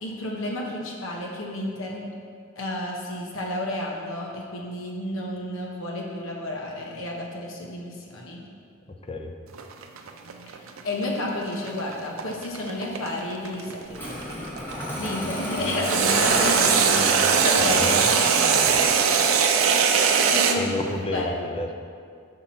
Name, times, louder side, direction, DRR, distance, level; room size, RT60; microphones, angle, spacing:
voice 1, 0.0-2.1 2.6-8.4 10.8-14.5 15.0-17.0 17.3-18.2 20.3-20.7 21.1-21.3, left 1 dB, 80° left, -1 dB, 0.9 m, -31 dB
sound 1, 9.5-14.7 15.8-20.6, right 6 dB, 85° right, 0.5 m, -21 dB
Engine starting, 13.9-19.3, equal, 10° left, 1.0 m, -31 dB
voice 2, 17.7-18.1 20.6-21.7, left 1 dB, 25° left, 4 dB, 0.5 m, -30 dB
5.7 x 5.6 x 4.3 m, 2.3 s
head